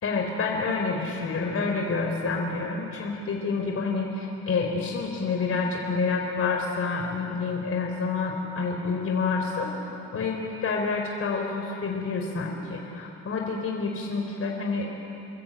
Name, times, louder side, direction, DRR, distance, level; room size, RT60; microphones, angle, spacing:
voice 1, 0.0-14.9, left 4 dB, 50° left, 0 dB, 3.7 m, -28 dB
28.0 x 21.5 x 8.8 m, 2.9 s
cardioid pair, 90°, 30 cm